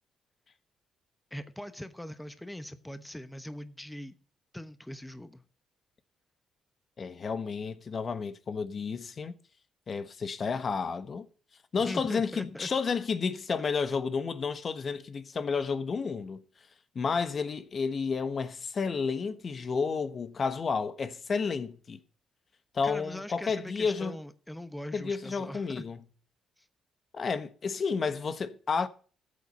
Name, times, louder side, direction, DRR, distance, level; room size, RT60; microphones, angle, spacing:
voice 1, 1.3-4.2 4.5-5.4 11.8-12.7 22.8-25.9 26.6-26.7, left 1 dB, 5° left, 1.1 m, -41 dB
voice 2, 7.0-9.3 9.9-11.3 11.7-16.4 16.9-22.0 22.7-24.2 24.9-26.0 27.1-28.9, left 5 dB, 45° left, 1.2 m, -31 dB
14.0 x 8.7 x 5.2 m
cardioid pair, 90°, 0 cm